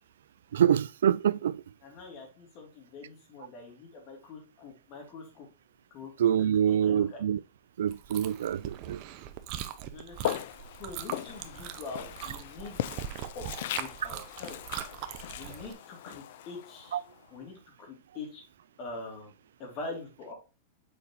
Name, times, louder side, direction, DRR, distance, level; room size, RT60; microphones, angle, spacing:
voice 1, 0.5-1.6 6.2-7.4 7.8-9.0 16.9-17.0, right 9 dB, 85° right, 0.3 m, -25 dB
voice 2, 1.8-5.5 5.9-6.1 6.7-7.2 9.9-10.4 10.8-12.8 13.3-13.4 13.7-14.6 15.3-17.0 17.3-18.4 18.8-19.3 19.6-20.3, left 3 dB, 45° left, 3.0 m, -44 dB
Chewing mastication, 7.9-15.7, right 11 dB, 50° right, 0.8 m, -41 dB
Walk footsteps, 10.2-17.3, left 13 dB, 70° left, 0.4 m, -39 dB
7.0 x 5.1 x 3.1 m
hypercardioid pair, 130°, 0 cm